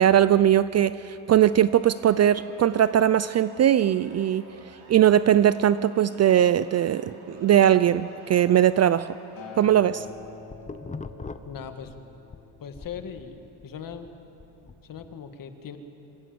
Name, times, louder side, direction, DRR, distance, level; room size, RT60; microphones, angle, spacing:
voice 1, 0.0-4.4 4.9-9.1 9.6-10.1, right 10 dB, 35° right, 15 dB, 0.4 m, -20 dB
Siren, 1.5-9.5, right 3 dB, 80° right, 5.2 m, -52 dB
Acoustic guitar, 9.4-13.7 14.5-14.6, left 5 dB, 80° left, 5.5 m, -46 dB
sound 1, 10.1-12.4 12.7-15.1, left 4 dB, 15° left, 0.8 m, -41 dB
voice 2, 11.5-11.9 12.6-14.1 14.8-15.8, left 7 dB, 45° left, 7 dB, 1.9 m, -39 dB
26.0 x 16.5 x 7.8 m, 2.9 s
cardioid pair, 105°, 47 cm